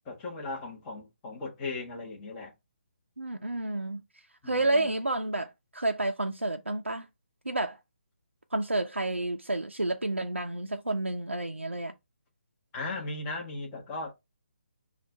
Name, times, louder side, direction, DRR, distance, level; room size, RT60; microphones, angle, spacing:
voice 1, 0.1-2.5 4.4-4.9 12.7-14.1, left 3 dB, 20° left, 1.1 m, -37 dB
voice 2, 3.2-4.0 4.4-7.1 7.5-7.8 8.5-11.9, right 2 dB, 90° right, 0.5 m, -30 dB
4.5 x 2.4 x 4.1 m
figure-of-eight pair, 145°, 6 cm